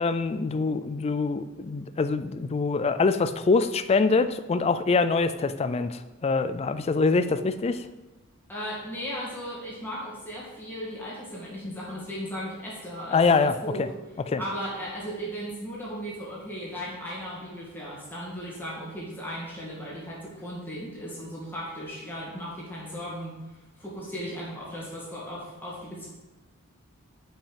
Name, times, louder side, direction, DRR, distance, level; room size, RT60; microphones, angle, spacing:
voice 1, 0.0-7.9 13.1-13.9 14.3-14.4, left 4 dB, 30° left, 12 dB, 0.3 m, -24 dB
voice 2, 8.5-13.8 14.4-23.4 23.8-26.1, equal, 10° left, -7 dB, 2.2 m, -36 dB
5.6 x 5.3 x 5.1 m, 1.1 s
head